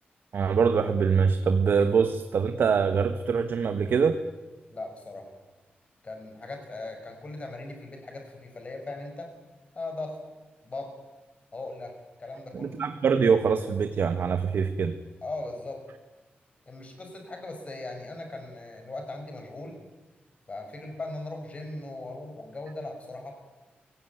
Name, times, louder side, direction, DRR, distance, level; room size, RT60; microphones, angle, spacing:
voice 1, 0.3-4.2 12.5-14.9, right 6 dB, 70° right, 8 dB, 1.3 m, -24 dB
voice 2, 4.7-5.3 6.0-9.3 9.8-10.2 10.6-10.9 11.5-11.9 12.2-12.8 15.2-15.8 16.7-19.8 20.5-23.3, left 2 dB, 35° left, 4 dB, 5.7 m, -38 dB
24.0 x 16.5 x 9.5 m, 1.2 s
wide cardioid pair, 145°, 4 cm